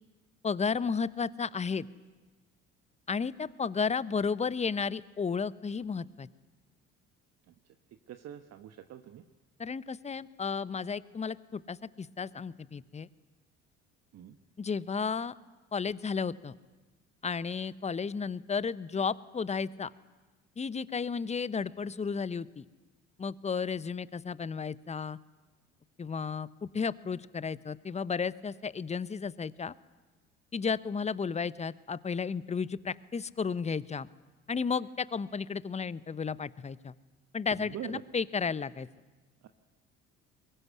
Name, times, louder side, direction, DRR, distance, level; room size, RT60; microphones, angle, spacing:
voice 1, 0.4-1.9 3.1-6.3 9.6-13.1 14.6-15.3 15.7-16.5 17.2-19.9 20.6-22.6 23.2-25.2 26.0-29.7 30.5-34.1 34.5-36.9 37.3-38.9, left 5 dB, 20° left, 19 dB, 0.8 m, -33 dB
voice 2, 8.1-9.2 14.1-14.4 37.6-38.0 39.4-39.5, right 11 dB, 45° right, 8 dB, 1.3 m, -43 dB
22.5 x 21.5 x 9.7 m, 1.3 s
figure-of-eight pair, 55°, 35 cm